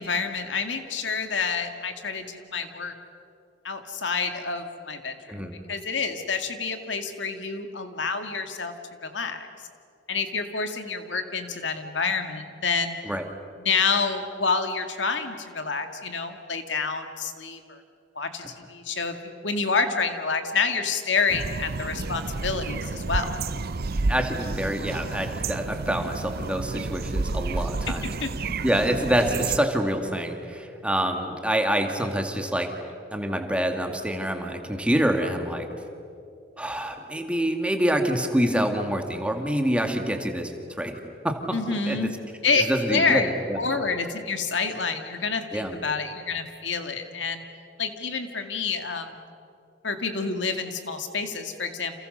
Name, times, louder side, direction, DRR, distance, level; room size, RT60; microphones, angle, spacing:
voice 1, 0.0-2.9 3.6-5.2 5.7-8.7 9.0-9.5 10.1-13.0 13.6-17.8 18.2-23.4 28.2-28.3 41.5-42.1 42.4-43.3 43.6-47.4 47.8-49.2 49.8-51.9, left 4 dB, 70° left, 6 dB, 2.2 m, -28 dB
sound 1, 21.3-29.6, right 3 dB, 55° right, 0.7 m, -30 dB
voice 2, 24.1-28.1 28.6-32.7 33.1-35.7 36.6-40.5 40.8-41.0 41.2-41.6 41.9-42.1 42.6-43.6 45.5-45.8, right 1 dB, 5° right, 4 dB, 2.2 m, -26 dB
30.0 x 28.0 x 6.7 m, 2.5 s
head